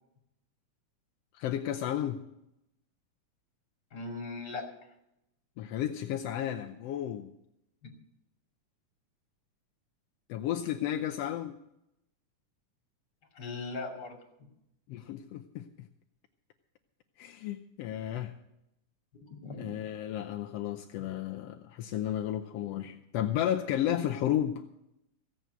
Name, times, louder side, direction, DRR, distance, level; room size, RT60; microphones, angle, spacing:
voice 1, 1.3-2.2 5.6-7.3 10.3-11.6 14.9-15.9 17.2-18.4 19.6-24.6, left 11 dB, 75° left, 4 dB, 1.5 m, -33 dB
voice 2, 3.9-4.7 7.8-7.9 13.3-14.2 19.1-19.7 20.9-21.1, left 3 dB, 35° left, 1 dB, 2.9 m, -39 dB
16.0 x 7.7 x 8.1 m, 0.82 s
omnidirectional pair, 3.6 m